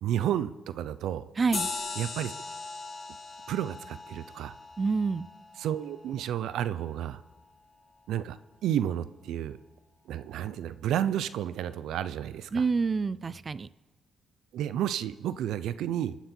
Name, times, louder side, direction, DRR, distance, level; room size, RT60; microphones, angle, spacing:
voice 1, 0.0-1.3 2.0-2.3 3.5-4.5 5.6-7.2 8.1-9.6 10.1-12.6 14.5-16.2, right 10 dB, 80° right, 15 dB, 0.6 m, -31 dB
voice 2, 1.4-1.7 4.8-5.3 12.5-13.7, right 4 dB, 35° right, 17 dB, 0.4 m, -27 dB
sound 1, 1.5-6.4, left 4 dB, 40° left, 4.3 m, -39 dB
29.5 x 10.0 x 4.5 m, 1.2 s
cardioid pair, 90°, 0 cm